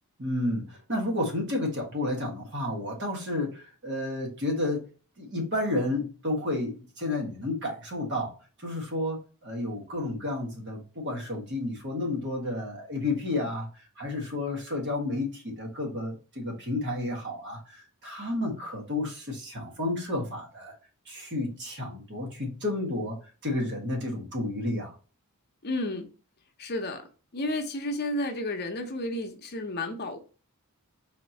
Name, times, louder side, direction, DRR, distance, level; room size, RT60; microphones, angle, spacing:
voice 1, 0.2-4.8 5.2-8.3 8.6-13.7 14.0-20.7 21.1-23.2 23.4-24.9, left 2 dB, 55° right, 1.6 m, -31 dB
voice 2, 25.6-26.1 26.6-27.0 27.3-30.2, left 1 dB, 45° left, 0.8 m, -31 dB
4.3 x 2.9 x 4.1 m
head